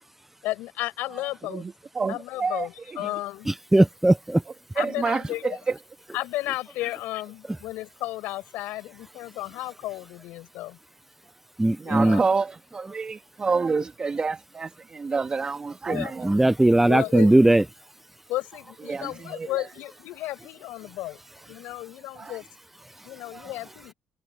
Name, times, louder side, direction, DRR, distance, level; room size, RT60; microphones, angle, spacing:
voice 1, 0.4-1.6 2.1-3.5 4.7-5.6 6.1-10.8 11.8-12.2 15.9-16.1 16.9-17.3 18.3-21.2 21.5-22.4 23.0-23.9, left 17 dB, 85° left, 5.9 m, -33 dB
voice 2, 1.5-3.1 4.7-5.8 11.8-16.4 18.8-19.7 22.1-22.4 23.3-23.7, right 4 dB, 30° right, 2.5 m, -29 dB
voice 3, 3.5-4.4 11.6-12.2 15.9-17.6, right 1 dB, 10° right, 0.5 m, -19 dB
cardioid pair, 105°, 3 cm